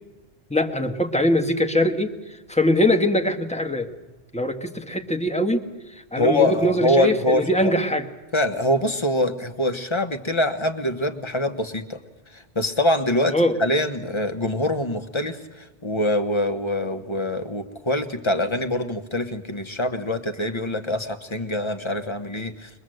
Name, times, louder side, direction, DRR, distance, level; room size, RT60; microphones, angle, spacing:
voice 1, 0.5-3.9 4.3-5.6 6.1-8.1 13.3-13.6, left 1 dB, 5° left, 5 dB, 1.3 m, -22 dB
voice 2, 6.2-7.7 8.3-12.0 12.3-22.7, left 1 dB, 25° left, 7 dB, 1.3 m, -24 dB
22.5 x 21.0 x 7.8 m, 1.1 s
omnidirectional pair, 1.1 m